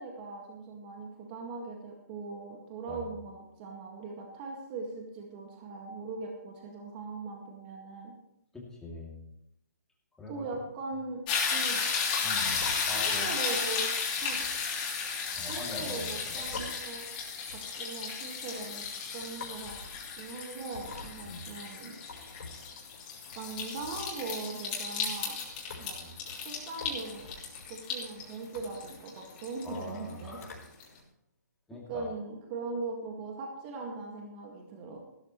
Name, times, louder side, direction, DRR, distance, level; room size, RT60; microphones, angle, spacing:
voice 1, 0.0-8.1 10.3-11.2 11.5-11.8 12.9-13.8 14.2-14.4 15.5-17.1 17.4-18.8 19.1-19.7 20.2-22.0 23.4-25.4 25.8-26.0 26.4-27.3 27.7-30.4 31.9-35.0, right 3 dB, 30° right, 1 dB, 2.0 m, -40 dB
voice 2, 8.5-9.2 10.2-10.5 12.2-13.5 15.4-16.5 21.2-21.5 26.0-26.1 29.6-30.6 31.7-32.1, left 2 dB, 5° left, -4 dB, 2.8 m, -43 dB
sound 1, 11.3-30.3 30.8-30.9, left 5 dB, 30° left, 3.3 m, -34 dB
sound 2, 12.5-30.9, left 4 dB, 55° left, 4.3 m, -49 dB
15.5 x 13.0 x 3.2 m, 0.79 s
hypercardioid pair, 150°, 10 cm